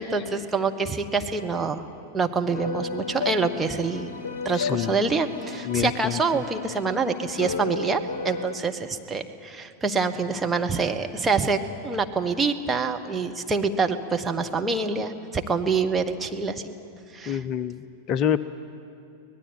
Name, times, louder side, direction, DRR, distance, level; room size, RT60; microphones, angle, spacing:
voice 1, 0.0-1.8 2.1-16.7 17.1-17.4, right 4 dB, 15° right, 4 dB, 1.3 m, -26 dB
sound 1, 2.5-8.6, left 4 dB, 60° left, 1.1 m, -33 dB
voice 2, 4.5-5.0 5.6-6.4 17.3-18.4, left 9 dB, 35° left, 14 dB, 0.5 m, -27 dB
25.0 x 18.5 x 9.1 m, 2.6 s
figure-of-eight pair, 90°, 0 cm